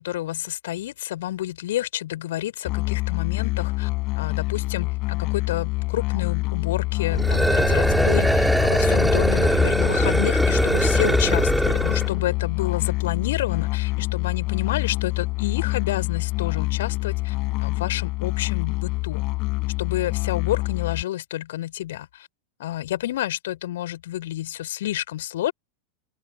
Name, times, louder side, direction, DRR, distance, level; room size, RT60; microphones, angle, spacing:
voice 1, 0.0-3.9 4.2-19.2 19.8-22.3 22.6-25.5, left 13 dB, 55° left, 5.6 m, -29 dB
Musical instrument, 2.6-21.0, left 22 dB, 40° left, 6.5 m, -26 dB
sound 1, 7.1-12.1, right 1 dB, ahead, 3.9 m, -21 dB
open air
figure-of-eight pair, 90°, 0 cm